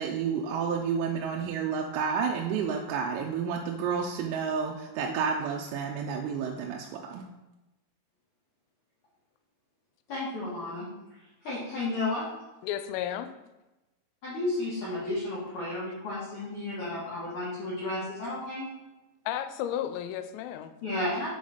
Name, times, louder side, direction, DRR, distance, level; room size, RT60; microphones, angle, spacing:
voice 1, 0.0-7.2, right 6 dB, 85° right, 1 dB, 3.2 m, -30 dB
voice 2, 10.1-10.9 11.4-12.3 14.2-18.7 20.8-21.3, left 2 dB, 70° left, -9 dB, 1.8 m, -32 dB
voice 3, 12.6-13.3 19.3-20.7, left 11 dB, 90° left, 10 dB, 3.3 m, -33 dB
7.4 x 4.0 x 4.9 m, 1.0 s
omnidirectional pair, 5.9 m